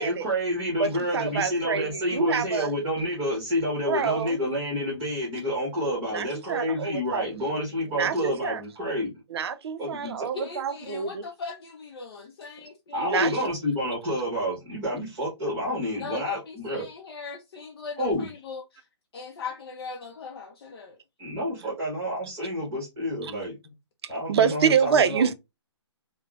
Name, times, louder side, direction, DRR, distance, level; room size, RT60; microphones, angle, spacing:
voice 1, 0.0-9.1 9.8-10.3 12.9-16.8 18.0-18.3 21.2-23.6 24.1-25.3, equal, 20° right, 1.2 m, -29 dB
voice 2, 0.8-2.7 3.9-4.4 6.1-7.5 8.0-8.6 9.3-11.2 13.0-13.5 24.0-25.3, right 6 dB, 60° right, 0.4 m, -27 dB
voice 3, 10.3-13.5 16.0-18.9 19.1-21.0, left 4 dB, 55° left, 0.5 m, -39 dB
3.2 x 2.1 x 2.3 m
hypercardioid pair, 160°, 15 cm